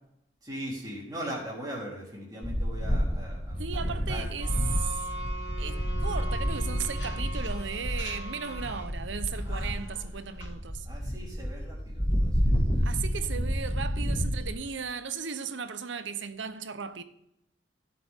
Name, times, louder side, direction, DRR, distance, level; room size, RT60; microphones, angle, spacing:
voice 1, 0.4-4.3 9.4-10.1 10.8-12.5, equal, 20° right, 3.5 m, -40 dB
sound 1, 2.4-14.5, equal, 30° left, 1.9 m, -30 dB
voice 2, 3.6-5.0 5.6-10.9 12.8-17.0, right 6 dB, 85° right, 0.8 m, -36 dB
sound 2, 4.4-8.9 9.3-9.5 9.8-10.5, right 1 dB, 70° left, 3.1 m, -41 dB
15.5 x 7.6 x 3.6 m
head